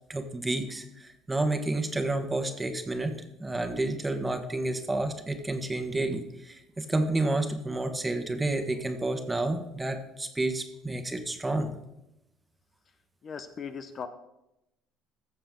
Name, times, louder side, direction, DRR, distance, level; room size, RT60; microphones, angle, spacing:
voice 1, 0.1-3.1 3.4-11.7, right 2 dB, 15° right, 6 dB, 1.4 m, -30 dB
voice 2, 13.2-14.1, left 6 dB, 45° left, 9 dB, 0.9 m, -38 dB
15.0 x 6.8 x 3.8 m, 0.88 s
supercardioid pair, 90°, 0 cm